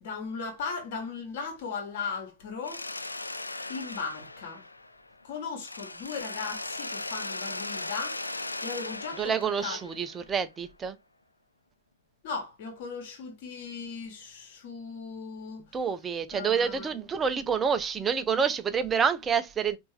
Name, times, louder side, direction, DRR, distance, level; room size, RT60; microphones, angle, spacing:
voice 1, 0.0-2.8 3.7-4.6 5.2-9.8 12.2-15.8 16.3-16.9, left 5 dB, 50° left, 1.4 m, -37 dB
Mechanisms, 2.6-5.2 5.6-10.5, left 2 dB, 80° left, 0.3 m, -38 dB
voice 2, 9.2-11.0 15.7-19.8, right 6 dB, 20° right, 0.5 m, -28 dB
4.4 x 2.6 x 3.2 m
figure-of-eight pair, 90°, 0 cm